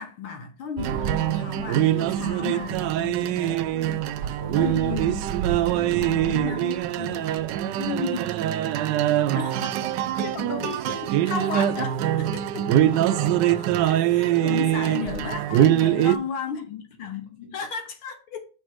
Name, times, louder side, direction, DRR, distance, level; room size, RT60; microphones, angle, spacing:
voice 1, 0.0-4.1 4.6-5.6 6.0-7.2 7.8-8.3 9.3-9.8 10.1-12.9 13.8-18.5, left 6 dB, 75° left, 2.0 m, -34 dB
voice 2, 0.8-1.3 2.1-2.4 4.2-5.2 5.4-6.2 6.9-7.9 12.2-12.4 12.9-14.2, right 2 dB, 20° right, 2.7 m, -42 dB
sound 1, 0.8-16.2, right 12 dB, 75° right, 1.0 m, -23 dB
Wind instrument woodwind instrument, 10.9-15.4, right 12 dB, 50° right, 1.3 m, -41 dB
6.1 x 4.6 x 6.1 m
omnidirectional pair, 2.4 m